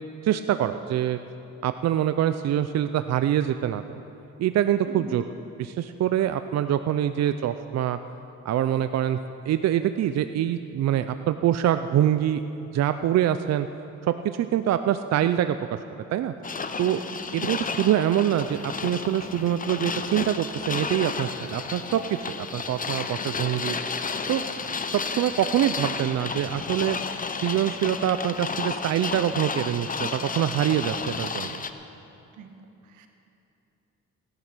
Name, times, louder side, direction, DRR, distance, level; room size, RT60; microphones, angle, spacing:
voice 1, 0.2-1.2 1.6-4.0 4.4-5.3 5.6-8.0 8.4-9.2 9.5-12.4 12.7-13.7 14.0-15.8 16.1-16.3 16.8-17.0 17.3-22.0 22.3-23.8 24.3-24.4 24.9-27.0 27.4-31.6, right 11 dB, 60° right, 10 dB, 0.5 m, -25 dB
voice 2, 4.9-5.2 17.1-17.4 32.3-32.6 32.8-33.1, right 3 dB, 90° right, 5 dB, 1.4 m, -43 dB
sound 1, 16.4-31.7, left 5 dB, 25° left, 0.8 m, -32 dB
sound 2, 18.2-28.7, left 3 dB, 45° left, 1.3 m, -47 dB
17.0 x 10.5 x 6.2 m, 2.9 s
cardioid pair, 90°, 30 cm